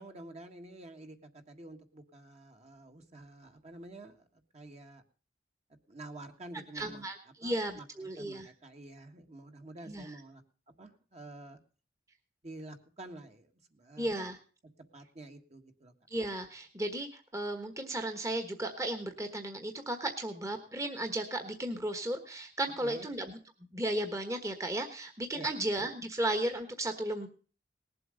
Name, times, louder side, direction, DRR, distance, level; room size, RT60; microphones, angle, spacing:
voice 1, 0.0-4.3 4.5-5.0 5.9-7.0 7.4-10.4 10.8-11.6 12.4-14.3 14.9-15.9 22.8-23.1 25.3-25.5, right 2 dB, 40° right, 5 dB, 1.6 m, -49 dB
voice 2, 6.7-7.1 7.4-8.5 9.9-10.1 14.0-14.4 16.1-23.4 23.7-27.3, right 1 dB, 20° right, 5 dB, 1.3 m, -35 dB
19.0 x 7.8 x 6.5 m, 0.39 s
head